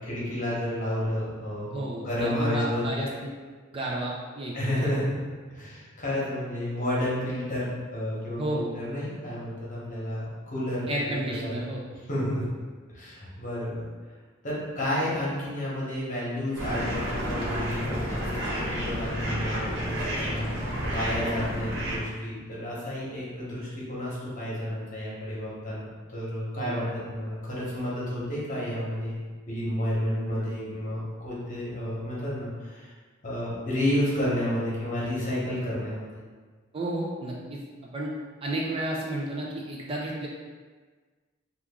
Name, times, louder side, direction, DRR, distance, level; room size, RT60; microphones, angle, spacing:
voice 1, 0.0-3.0 4.5-5.2 5.5-10.9 11.4-11.6 12.1-12.4 12.9-13.8 14.4-29.2 29.5-32.9 33.2-36.1, left 1 dB, 40° left, -6 dB, 1.0 m, -31 dB
voice 2, 1.7-3.3 3.7-4.5 8.4-8.7 10.9-11.9 26.6-26.8 36.7-37.6 37.9-38.1 38.4-40.3, right 1 dB, 30° right, -3 dB, 0.4 m, -32 dB
sound 1, 16.6-22.0, equal, 60° right, 0.8 m, -31 dB
2.9 x 2.4 x 3.5 m, 1.5 s
head